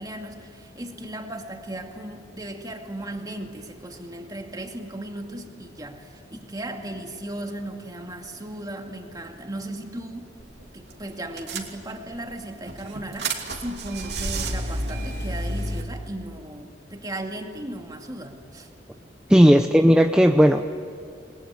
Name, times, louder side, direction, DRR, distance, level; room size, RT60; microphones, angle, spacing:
voice 1, 0.0-10.4 10.7-18.7, right 1 dB, 20° right, 3 dB, 2.3 m, -36 dB
sound 1, 10.4-10.6 10.9-11.0 11.4-12.2 12.7-15.8, right 2 dB, 65° right, 2.9 m, -30 dB
voice 2, 19.3-20.6, equal, 5° right, 6 dB, 0.7 m, -15 dB
28.0 x 21.5 x 9.7 m, 2.3 s
head